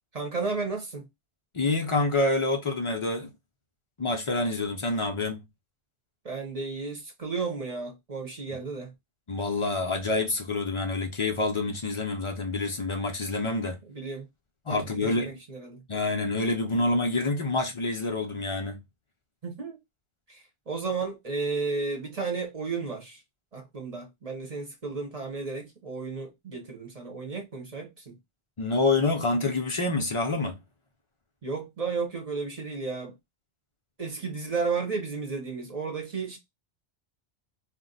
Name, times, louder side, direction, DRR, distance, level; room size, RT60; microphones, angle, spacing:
voice 1, 0.1-1.1 6.2-8.9 13.9-14.3 14.7-15.8 19.4-19.8 20.3-23.2 23.5-28.2 31.4-33.2 34.0-36.4, right 4 dB, 35° right, 0.8 m, -33 dB
voice 2, 1.5-3.3 4.0-5.4 9.3-13.8 14.7-15.3 15.9-18.8 28.6-30.6, left 2 dB, 55° left, 0.3 m, -27 dB
2.5 x 2.0 x 3.8 m
omnidirectional pair, 1.1 m